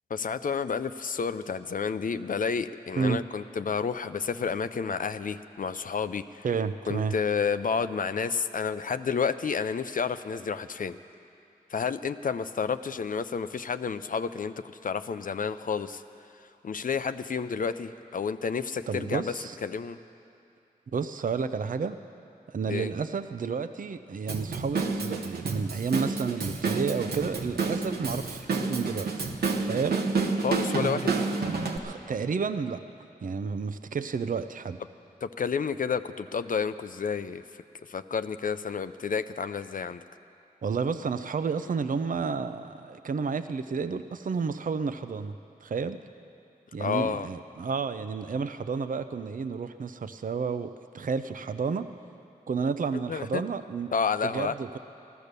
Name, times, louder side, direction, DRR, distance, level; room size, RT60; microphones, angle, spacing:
voice 1, 0.1-6.5 6.9-11.0 11.7-14.5 14.8-16.0 16.6-19.3 19.6-20.0 22.7-22.9 30.4-31.1 35.2-37.4 37.9-40.0 46.8-47.3 53.1-53.4 53.9-54.5, left 6 dB, 60° left, 12 dB, 0.5 m, -30 dB
voice 2, 6.4-7.2 18.9-19.6 20.9-22.0 22.5-29.1 29.6-30.0 31.8-32.8 33.2-34.8 40.6-45.3 45.6-46.0 46.7-51.9 52.5-53.9 54.2-54.8, right 5 dB, 60° right, 10 dB, 0.6 m, -31 dB
Drum kit / Drum, 24.3-31.8, right 4 dB, 85° right, 1.0 m, -29 dB
15.5 x 12.5 x 6.7 m, 2.6 s
cardioid pair, 50°, 16 cm